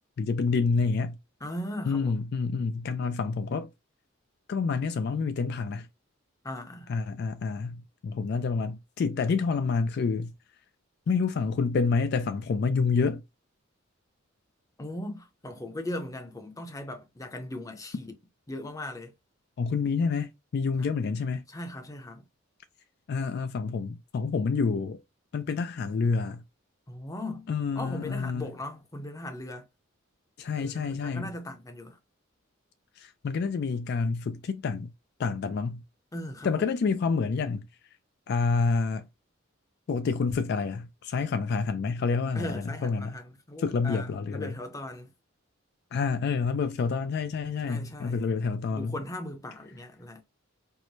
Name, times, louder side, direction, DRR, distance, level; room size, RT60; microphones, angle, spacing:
voice 1, 0.2-1.2 1.9-3.7 4.5-5.9 6.9-10.3 11.1-13.2 19.6-21.4 23.1-25.0 25.3-26.4 27.5-28.4 30.4-31.3 33.0-34.9 35.2-35.8 36.4-37.7 38.3-39.1 39.9-43.1 43.6-44.5 45.9-48.9, left 4 dB, 50° left, 0.3 m, -28 dB
voice 2, 1.4-2.3 6.4-6.9 14.8-18.1 18.5-19.1 20.8-20.9 21.5-22.3 26.9-29.7 30.6-32.0 36.1-36.7 42.3-45.1 47.6-48.3 48.7-50.2, left 1 dB, 15° left, 0.6 m, -38 dB
4.6 x 2.1 x 2.6 m
head